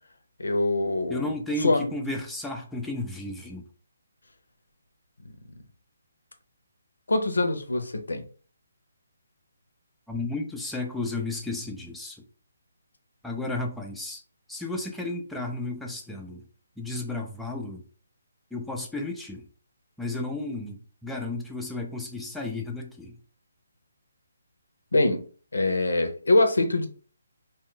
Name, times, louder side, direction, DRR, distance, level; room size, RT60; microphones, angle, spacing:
voice 1, 0.4-1.3 1.6-1.9 7.1-8.2 24.9-25.2 25.5-26.9, left 2 dB, 85° left, 0.6 m, -24 dB
voice 2, 1.1-3.6 10.1-12.2 13.2-14.2 14.5-16.4 16.8-17.8 18.5-19.4 20.0-23.2, left 2 dB, ahead, 0.3 m, -33 dB
2.3 x 2.2 x 3.6 m
hypercardioid pair, 155°, 0 cm